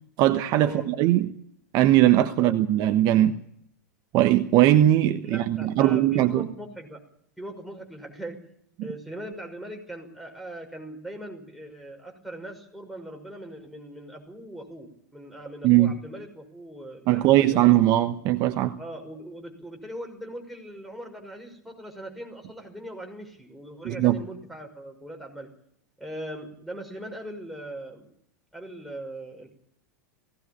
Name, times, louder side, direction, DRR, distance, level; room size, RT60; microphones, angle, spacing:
voice 1, 0.2-1.3 1.7-3.3 4.1-6.5 15.6-15.9 17.1-18.8 23.8-24.2, right 14 dB, 45° right, 1.2 m, -20 dB
voice 2, 5.2-7.0 7.4-8.4 8.8-17.7 18.8-25.5 26.0-28.0 28.5-29.5, right 1 dB, ahead, 6.2 m, -40 dB
19.5 x 17.5 x 8.8 m
hypercardioid pair, 90°, 9 cm